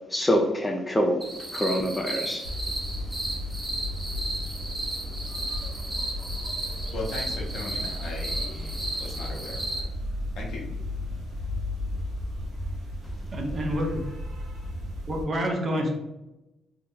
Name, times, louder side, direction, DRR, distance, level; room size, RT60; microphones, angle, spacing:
voice 1, 0.1-1.2 1.5-2.4, equal, 15° left, 1 dB, 0.4 m, -25 dB
sound 1, 1.2-9.8, right 1 dB, 10° right, 0.9 m, -34 dB
sound 2, 2.4-15.2, left 1 dB, 70° right, 0.9 m, -34 dB
voice 2, 6.9-9.9 10.3-10.7, left 2 dB, 70° left, -2 dB, 0.9 m, -38 dB
voice 3, 13.3-14.0 15.1-15.9, equal, 40° right, 2 dB, 0.7 m, -28 dB
2.8 x 2.0 x 3.7 m, 0.96 s
cardioid pair, 90°, 0 cm